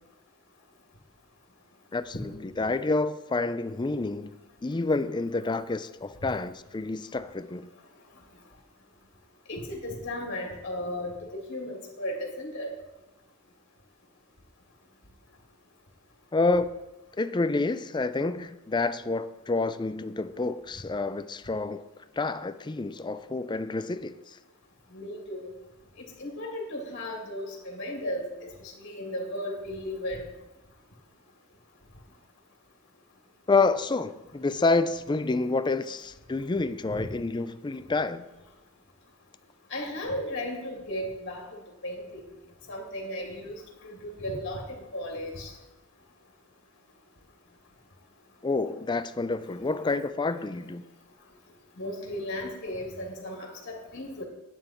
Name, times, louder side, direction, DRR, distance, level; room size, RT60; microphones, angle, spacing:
voice 1, 1.9-4.4 4.6-7.7 16.3-16.7 17.2-21.8 22.2-24.2 33.5-38.2 48.4-50.8, left 3 dB, 20° left, 0.4 m, -28 dB
voice 2, 9.5-12.7 24.9-25.5 26.0-30.2 37.0-37.1 39.7-41.4 41.8-42.2 42.7-45.5 49.8-49.9 51.8-54.2, left 1 dB, 55° left, 2.5 m, -35 dB
11.0 x 9.1 x 4.4 m
head